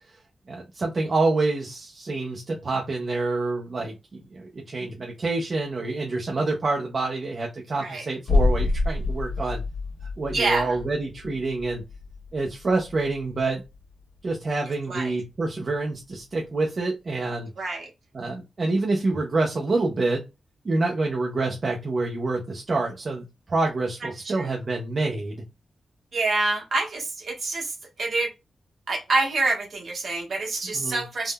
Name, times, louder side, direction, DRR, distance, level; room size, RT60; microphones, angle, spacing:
voice 1, 0.5-9.6 10.0-11.8 12.3-13.6 14.2-17.5 18.1-20.2 20.6-25.4 30.7-31.0, right 3 dB, 35° right, 0 dB, 0.4 m, -27 dB
sound 1, 8.3-14.0 14.3-14.4, left 3 dB, 85° left, 0.9 m, -27 dB
voice 2, 10.3-10.7 14.9-15.1 17.6-17.9 24.2-24.5 26.1-28.3 28.9-31.3, right 3 dB, 55° right, -1 dB, 1.1 m, -26 dB
3.4 x 2.0 x 2.2 m, 0.25 s
wide cardioid pair, 175°, 0 cm